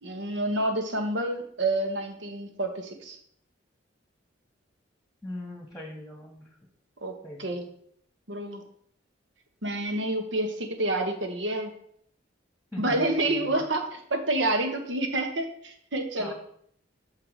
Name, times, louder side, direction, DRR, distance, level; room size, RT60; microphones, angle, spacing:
voice 1, 0.0-3.2 7.0-7.6 8.3-8.6 9.6-11.7 12.8-16.3, right 1 dB, 70° right, 6 dB, 1.3 m, -28 dB
voice 2, 5.2-6.5 7.2-7.5 12.7-13.7 16.2-16.3, left 1 dB, ahead, -1 dB, 1.4 m, -40 dB
6.7 x 4.7 x 6.6 m, 0.66 s
head